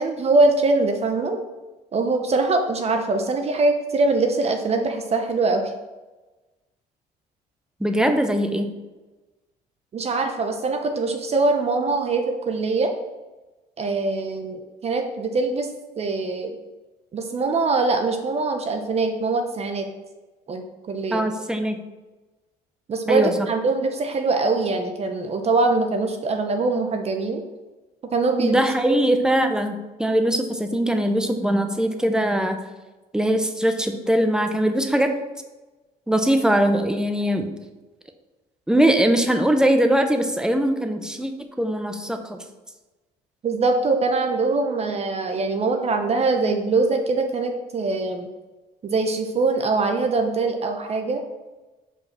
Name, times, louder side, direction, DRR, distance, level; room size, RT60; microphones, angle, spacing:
voice 1, 0.0-1.4 1.9-5.7 9.9-12.9 13.8-15.7 16.0-16.5 17.1-19.9 20.5-21.3 22.9-27.4 28.1-28.7 43.4-48.3 48.8-51.2, right 3 dB, 40° right, 5 dB, 0.8 m, -23 dB
voice 2, 7.8-8.7 21.1-21.8 23.1-23.3 28.4-32.6 33.1-35.1 36.1-37.5 38.7-41.3 41.6-42.4, right 1 dB, 5° right, 6 dB, 0.7 m, -21 dB
5.4 x 4.5 x 5.9 m, 1.1 s
cardioid pair, 110°, 17 cm